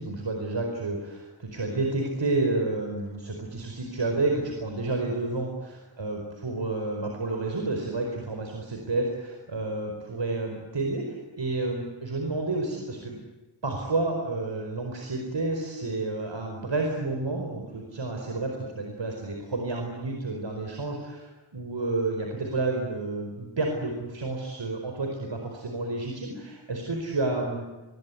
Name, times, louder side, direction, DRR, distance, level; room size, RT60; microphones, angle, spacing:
voice 1, 0.0-13.2 13.6-27.7, right 2 dB, 65° right, 2 dB, 4.7 m, -30 dB
29.5 x 22.0 x 8.6 m, 1.1 s
wide cardioid pair, 80°, 47 cm